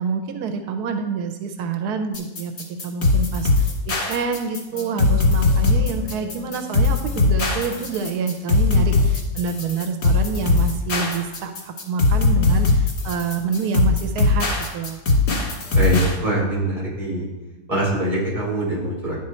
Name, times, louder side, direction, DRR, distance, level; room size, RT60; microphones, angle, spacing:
voice 1, 0.0-14.5 14.7-15.0, right 5 dB, 90° right, 6 dB, 1.2 m, -27 dB
sound 1, 2.1-16.2, left 3 dB, 85° left, 2.2 m, -20 dB
Wind instrument woodwind instrument, 4.7-10.1, left 4 dB, 65° left, 1.4 m, -41 dB
voice 2, 15.7-17.3 17.7-19.2, right 1 dB, 20° right, -6 dB, 2.9 m, -23 dB
10.5 x 4.0 x 4.3 m, 1.0 s
omnidirectional pair, 1.6 m